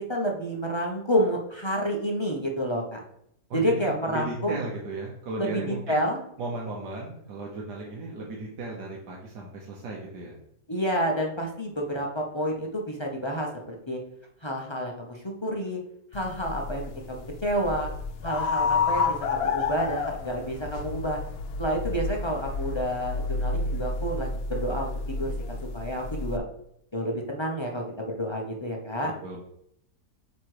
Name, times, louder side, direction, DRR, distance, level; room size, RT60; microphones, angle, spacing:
voice 1, 0.1-3.0 3.5-4.6 5.4-6.2 10.7-14.0 14.4-15.8 16.1-17.9 18.2-21.2 21.6-26.4 26.9-29.1, equal, 25° left, -1 dB, 0.7 m, -29 dB
voice 2, 3.5-6.0 6.4-10.3 29.0-29.4, right 2 dB, 85° right, -2 dB, 1.7 m, -35 dB
sound 1, 16.1-26.4, left 4 dB, 70° left, 0.5 m, -30 dB
8.2 x 3.1 x 4.8 m, 0.73 s
omnidirectional pair, 1.8 m